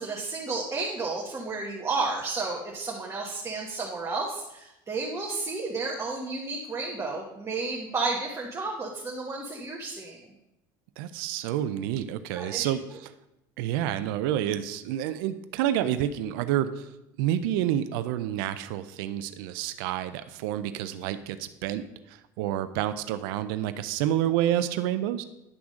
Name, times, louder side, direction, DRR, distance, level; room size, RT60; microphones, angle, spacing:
voice 1, 0.0-10.2 12.3-12.6, right 3 dB, 25° right, -1 dB, 1.3 m, -32 dB
voice 2, 11.0-13.1 13.6-16.9 17.2-25.2, right 11 dB, 80° right, 11 dB, 0.5 m, -29 dB
9.9 x 3.5 x 6.3 m, 0.89 s
supercardioid pair, 110°, 12 cm